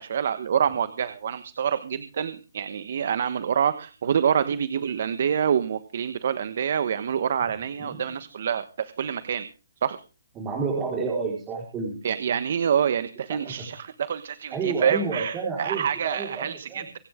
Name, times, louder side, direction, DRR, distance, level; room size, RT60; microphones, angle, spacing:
voice 1, 0.0-9.5 9.8-10.0 12.0-17.0, right 8 dB, 55° right, 12 dB, 1.3 m, -26 dB
voice 2, 10.4-11.9 13.3-13.7 14.5-16.8, right 4 dB, 15° right, -2 dB, 4.7 m, -30 dB
24.5 x 9.5 x 3.8 m, 0.34 s
hypercardioid pair, 160°, 0 cm